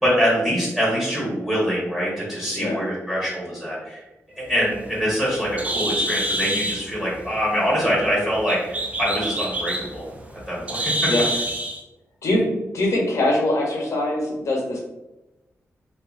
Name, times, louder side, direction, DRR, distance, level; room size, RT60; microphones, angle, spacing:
voice 1, 0.0-4.0 4.4-10.1 10.5-11.1, equal, 10° right, -7 dB, 1.1 m, -24 dB
Bird, 4.5-11.8, right 1 dB, 25° right, 0.4 m, -28 dB
voice 2, 12.7-14.8, left 1 dB, 75° left, -2 dB, 0.8 m, -22 dB
2.8 x 2.4 x 2.4 m, 0.99 s
wide cardioid pair, 125°, 5 cm